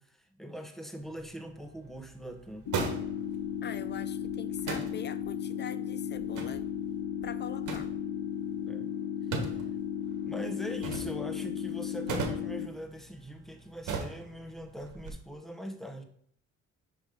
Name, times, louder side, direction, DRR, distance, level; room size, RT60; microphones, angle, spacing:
voice 1, 0.0-2.7 8.6-8.9 9.3-9.6 10.2-16.0, equal, ahead, 1.0 m, -42 dB
sound 1, 1.0-15.1, right 4 dB, 80° right, 1.5 m, -41 dB
sound 2, 2.7-12.7, left 9 dB, 70° left, 1.0 m, -35 dB
voice 2, 3.6-6.7 7.2-7.9, left 8 dB, 35° left, 0.5 m, -43 dB
5.2 x 5.1 x 5.2 m
cardioid pair, 90°, 30 cm